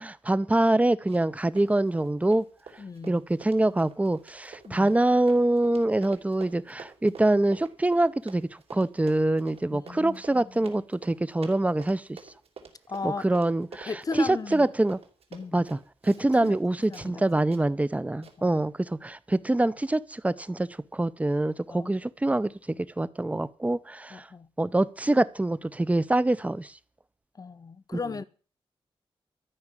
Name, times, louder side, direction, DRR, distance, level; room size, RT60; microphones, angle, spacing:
voice 1, 0.0-2.4 3.1-12.2 13.0-15.0 15.5-18.7 19.0-24.3 24.6-26.7, right 2 dB, 15° right, 0.6 m, -25 dB
Run, 1.1-1.3 1.6-16.6 16.9-17.1 17.5-17.6 18.2-18.4, right 5 dB, 80° right, 3.3 m, -47 dB
voice 2, 2.8-3.3 4.6-5.0 9.7-10.7 12.9-13.2 13.8-14.7 15.3-15.6 16.2-16.6 16.9-17.3 18.2-18.6 21.7-22.1 24.1-24.5 27.4-28.2, left 4 dB, 40° left, 0.8 m, -37 dB
13.5 x 6.0 x 9.8 m
wide cardioid pair, 135°, 10 cm